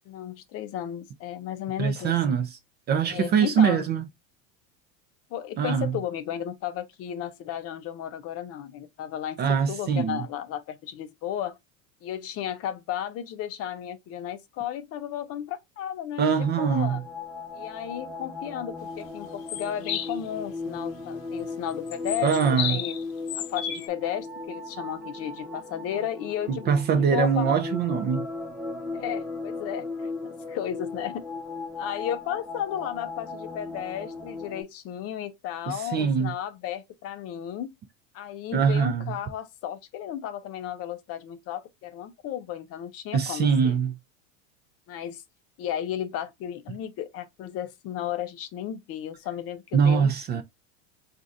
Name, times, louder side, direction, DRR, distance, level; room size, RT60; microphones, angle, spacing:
voice 1, 0.1-2.1 3.1-3.9 5.3-9.4 9.7-11.6 12.0-17.0 17.5-22.3 22.7-23.0 23.4-26.7 27.1-27.6 28.9-31.2 31.8-37.7 38.1-43.8 44.9-45.2 45.6-50.4, left 10 dB, 35° left, 0.5 m, -34 dB
voice 2, 1.8-2.5 2.9-4.0 5.6-5.9 9.4-10.2 16.2-17.0 22.2-22.8 26.7-28.3 35.7-36.3 38.5-39.1 43.1-43.9 49.7-50.4, right 6 dB, 25° right, 0.4 m, -23 dB
sound 1, 16.3-34.6, left 3 dB, ahead, 0.8 m, -37 dB
sound 2, 19.5-20.1 21.9-23.0 23.3-23.9, left 9 dB, 85° left, 0.8 m, -32 dB
3.9 x 2.5 x 2.4 m
supercardioid pair, 120°, 40 cm